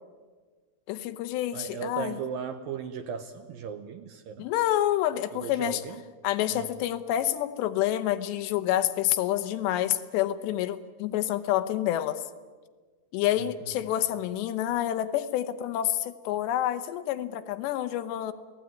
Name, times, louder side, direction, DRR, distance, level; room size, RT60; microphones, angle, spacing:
voice 1, 0.9-2.1 4.4-5.8 6.2-12.2 13.1-18.3, left 12 dB, 80° left, 10 dB, 3.1 m, -28 dB
voice 2, 1.5-4.5 5.3-6.1 6.5-6.7 13.4-13.8, right 7 dB, 75° right, 8 dB, 2.3 m, -37 dB
28.0 x 18.0 x 9.3 m, 1.5 s
omnidirectional pair, 5.0 m